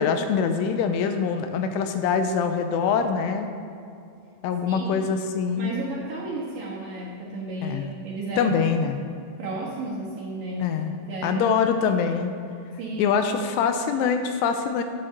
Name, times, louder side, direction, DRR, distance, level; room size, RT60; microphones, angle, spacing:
voice 1, 0.0-3.5 4.4-5.7 7.6-7.9 8.4-9.0 10.6-10.9 11.2-12.4 13.0-14.8, left 6 dB, 90° left, 7 dB, 3.2 m, -24 dB
voice 2, 4.7-5.1 5.6-8.5 9.4-10.8 11.1-11.6 11.9-12.0 12.8-13.2, right 2 dB, 60° right, -6 dB, 2.5 m, -33 dB
12.0 x 8.8 x 4.0 m, 2.5 s
omnidirectional pair, 5.5 m